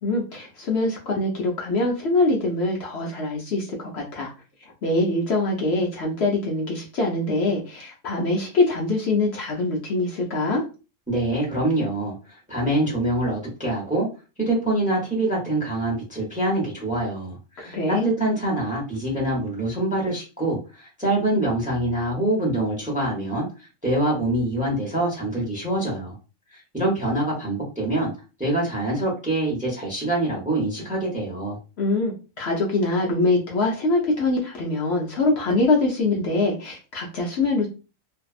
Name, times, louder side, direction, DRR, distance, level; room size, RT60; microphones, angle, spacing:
voice 1, 0.0-4.3 4.8-10.6 17.6-18.1 31.8-37.7, left 2 dB, 60° left, -1 dB, 0.9 m, -23 dB
voice 2, 11.1-14.1 14.4-23.5 23.8-26.2 26.5-28.1 28.4-31.6, right 1 dB, 5° right, -3 dB, 0.7 m, -25 dB
2.6 x 2.2 x 2.4 m, 0.32 s
omnidirectional pair, 1.3 m